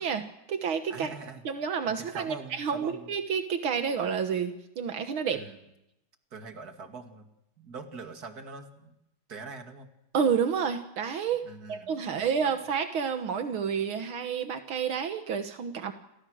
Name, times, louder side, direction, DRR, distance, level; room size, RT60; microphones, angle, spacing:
voice 1, 0.0-1.1 1.5-5.4 10.1-11.4 11.7-15.9, right 7 dB, 80° right, 7 dB, 2.2 m, -29 dB
voice 2, 0.9-1.4 1.8-3.1 5.3-5.7 6.3-7.3 7.6-9.0 9.3-9.9 11.4-12.6, right 4 dB, 50° right, 5 dB, 2.8 m, -43 dB
30.0 x 25.5 x 6.4 m, 0.85 s
omnidirectional pair, 2.2 m